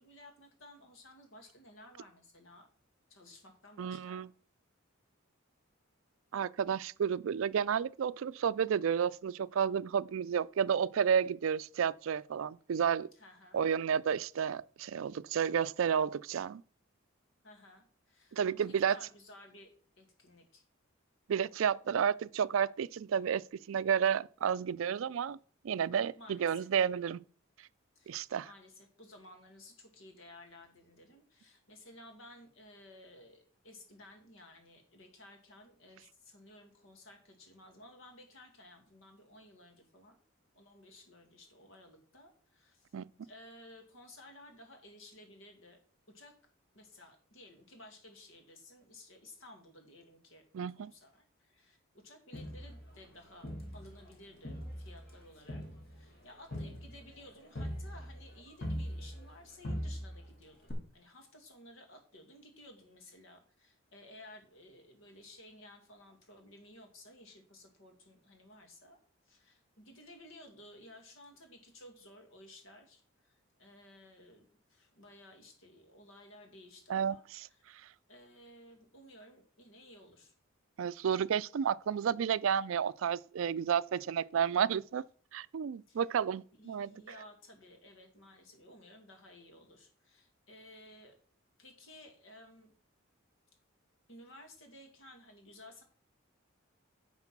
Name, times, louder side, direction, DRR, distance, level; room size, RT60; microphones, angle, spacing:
voice 1, 0.0-2.7 3.1-4.3 13.2-13.6 17.4-19.7 20.0-20.6 26.1-26.8 28.0-40.2 40.5-42.9 43.2-45.8 46.1-46.4 46.7-50.4 50.7-69.0 69.3-77.6 78.1-80.3 85.9-86.0 86.6-91.2 91.6-92.7 94.1-95.8, left 1 dB, 70° left, 2.1 m, -56 dB
voice 2, 3.8-4.3 6.3-13.1 13.5-16.6 18.3-19.0 21.3-25.4 25.6-27.2 28.1-28.5 42.9-43.1 50.5-50.9 76.9-77.2 80.8-85.0 85.3-86.9, right 7 dB, 75° right, 0.4 m, -31 dB
Crowd, 52.3-54.1 54.4-59.4 59.6-60.3 60.7-60.8, equal, 45° left, 2.6 m, -41 dB
9.7 x 4.4 x 6.0 m
head